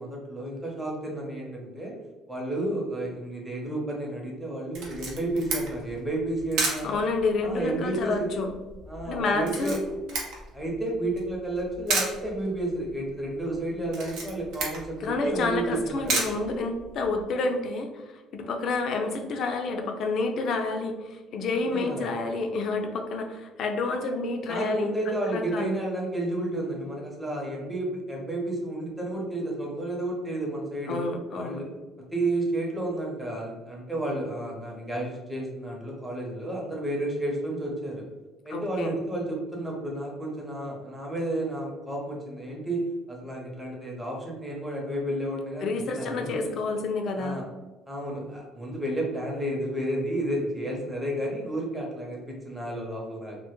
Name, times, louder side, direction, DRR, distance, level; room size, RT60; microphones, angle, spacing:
voice 1, 0.0-2.0 2.3-7.1 7.4-8.3 8.9-9.8 10.5-16.1 21.7-22.1 24.5-31.0 31.3-31.7 32.0-38.1 38.4-46.5 47.2-47.5 47.9-53.4, right 1 dB, 5° right, -3 dB, 0.7 m, -31 dB
Camera, 4.7-17.2, right 3 dB, 75° right, 0.6 m, -34 dB
voice 2, 6.8-8.5 9.0-9.8 15.0-18.1 18.3-25.8 30.9-31.6 38.5-39.0 45.6-47.4, left 3 dB, 55° left, 4 dB, 0.3 m, -29 dB
2.1 x 2.0 x 2.9 m, 1.2 s
cardioid pair, 115°, 0 cm